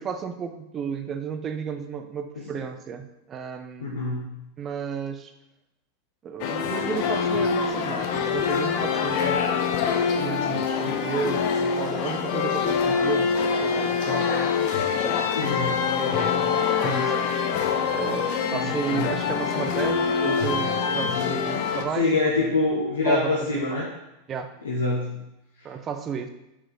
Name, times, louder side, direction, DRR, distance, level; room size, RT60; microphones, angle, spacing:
voice 1, 0.0-4.1 4.6-5.3 6.2-9.7 10.1-17.3 17.9-22.3 23.0-23.8 24.3-24.5 25.6-26.3, right 6 dB, 30° right, 7 dB, 0.8 m, -33 dB
voice 2, 3.8-4.3 15.3-15.8 18.5-19.1 22.0-23.9 24.6-25.1, left 3 dB, 80° left, -4 dB, 1.3 m, -25 dB
sound 1, 6.4-21.8, left 6 dB, 55° left, 0.9 m, -25 dB
6.3 x 4.9 x 5.5 m, 0.90 s
hypercardioid pair, 90°, 0 cm